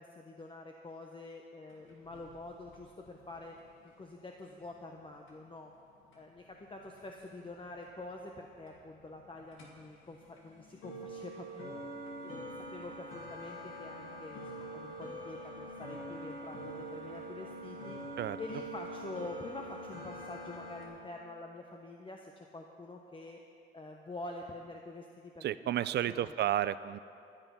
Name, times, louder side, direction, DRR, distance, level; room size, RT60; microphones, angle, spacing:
voice 1, 0.0-3.5 4.0-5.7 6.1-11.8 12.2-23.4 23.7-26.3, left 2 dB, 25° left, 1 dB, 1.0 m, -47 dB
sound 1, 1.7-20.9, right 1 dB, 85° left, 2.4 m, -46 dB
voice 2, 25.4-27.0, right 11 dB, 60° right, 16 dB, 0.4 m, -32 dB
13.0 x 10.5 x 5.9 m, 2.6 s
cardioid pair, 90°, 20 cm